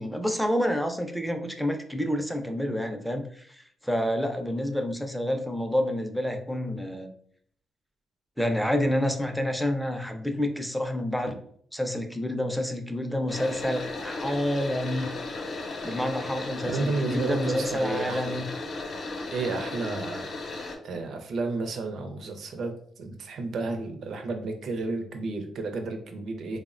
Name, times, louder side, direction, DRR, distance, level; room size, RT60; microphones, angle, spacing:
voice 1, 0.0-3.6 3.8-7.1 8.4-11.3 11.7-15.1 15.8-18.5, left 1 dB, ahead, 5 dB, 0.4 m, -28 dB
sound 1, 13.3-20.8, left 3 dB, 60° left, 0.6 m, -35 dB
voice 2, 16.7-18.4 19.3-20.3 20.8-26.6, right 3 dB, 70° right, 5 dB, 0.5 m, -32 dB
3.3 x 2.0 x 2.4 m, 0.62 s
cardioid pair, 70°, 0 cm